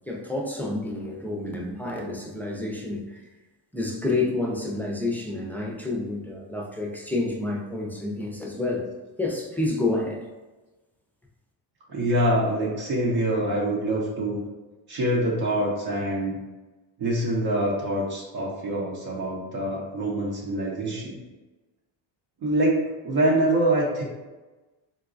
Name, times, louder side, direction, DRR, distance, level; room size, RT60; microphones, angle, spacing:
voice 1, 0.1-3.1 3.7-8.8 9.2-10.2, left 2 dB, 5° left, -2 dB, 0.4 m, -29 dB
voice 2, 11.9-14.4 14.9-16.4 17.0-21.1 22.4-24.0, right 1 dB, 55° right, -3 dB, 0.8 m, -25 dB
3.9 x 2.2 x 2.5 m, 1.2 s
cardioid pair, 95°, 46 cm